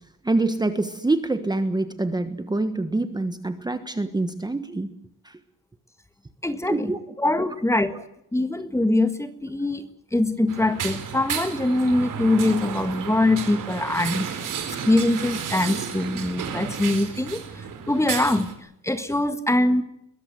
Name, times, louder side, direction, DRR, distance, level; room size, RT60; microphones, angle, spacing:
voice 1, 0.2-4.9 5.2-5.4 6.7-7.0, right 2 dB, 10° right, 9 dB, 1.4 m, -25 dB
voice 2, 6.4-6.9 7.2-7.9 8.3-14.4 14.9-18.5 18.8-19.8, left 2 dB, 10° left, 10 dB, 1.8 m, -23 dB
sound 1, 10.5-18.5, right 7 dB, 70° right, 4.5 m, -32 dB
22.5 x 21.0 x 7.9 m, 0.78 s
wide cardioid pair, 160°, 33 cm